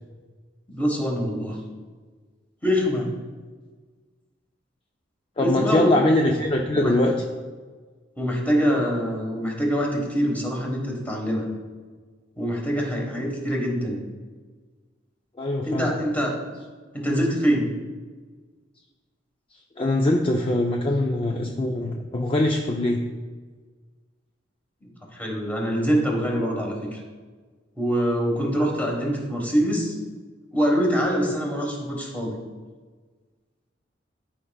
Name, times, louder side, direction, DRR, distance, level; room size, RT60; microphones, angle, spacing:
voice 1, 0.7-1.6 2.6-3.1 5.4-6.0 6.7-6.9 8.2-11.5 12.4-14.0 15.6-16.3 16.9-17.7 25.1-27.0 27.8-29.9 30.5-32.3, equal, 10° left, -1 dB, 1.4 m, -24 dB
voice 2, 5.4-7.2 15.4-15.9 19.8-23.0, left 1 dB, 30° left, 1 dB, 0.4 m, -22 dB
12.5 x 5.2 x 2.3 m, 1.4 s
head